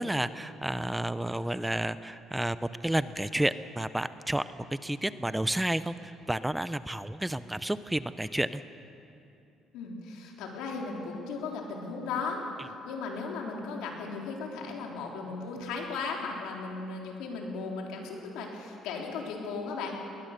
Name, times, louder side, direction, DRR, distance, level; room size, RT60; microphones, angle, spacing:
voice 1, 0.0-4.4 4.8-8.6, right 1 dB, 5° right, 14 dB, 0.6 m, -31 dB
voice 2, 9.7-19.9, left 4 dB, 85° left, 0 dB, 3.7 m, -36 dB
20.5 x 20.0 x 6.7 m, 2.7 s
cardioid pair, 90°, 0 cm